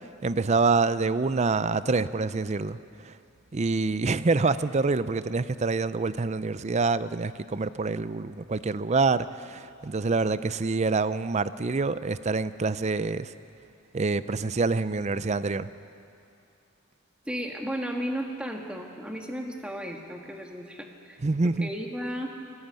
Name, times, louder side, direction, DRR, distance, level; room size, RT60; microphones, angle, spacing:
voice 1, 0.2-2.8 3.0-3.1 3.5-13.3 13.9-15.7 21.2-21.7, right 3 dB, 30° right, 15 dB, 0.5 m, -26 dB
voice 2, 17.3-21.2 21.6-22.3, equal, 5° right, 2 dB, 1.7 m, -34 dB
24.0 x 14.5 x 9.1 m, 2.6 s
head